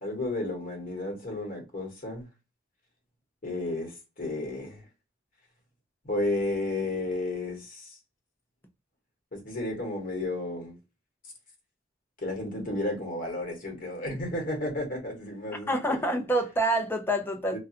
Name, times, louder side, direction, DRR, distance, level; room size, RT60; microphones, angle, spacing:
voice 1, 0.0-2.3 3.4-4.8 6.0-8.0 9.3-10.8 12.2-16.0 17.5-17.6, left 2 dB, 45° left, 1.1 m, -32 dB
voice 2, 15.7-17.6, right 1 dB, 10° left, 0.4 m, -27 dB
2.3 x 2.2 x 2.7 m
head